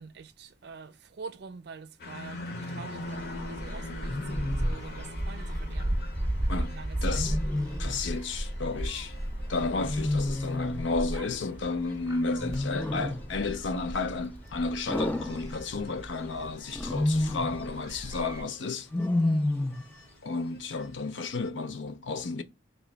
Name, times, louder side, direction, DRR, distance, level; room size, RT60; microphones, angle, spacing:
voice 1, 0.0-6.0 6.6-7.2 19.1-19.5, right 5 dB, 60° right, 0.5 m, -45 dB
sound 1, 2.0-21.5, left 2 dB, 55° left, 0.9 m, -46 dB
Wild animals, 2.5-2.9 4.1-4.8 7.1-8.1 9.8-10.9 12.4-13.3 14.9-16.0 16.7-17.6 18.9-19.9, left 1 dB, 10° left, 0.3 m, -30 dB
Gull seagull, 3.0-18.4, right 1 dB, 20° right, 0.7 m, -35 dB
voice 2, 7.0-7.4 7.8-9.1 9.5-18.9 20.2-22.4, left 3 dB, 75° left, 0.5 m, -32 dB
3.0 x 3.0 x 4.5 m
head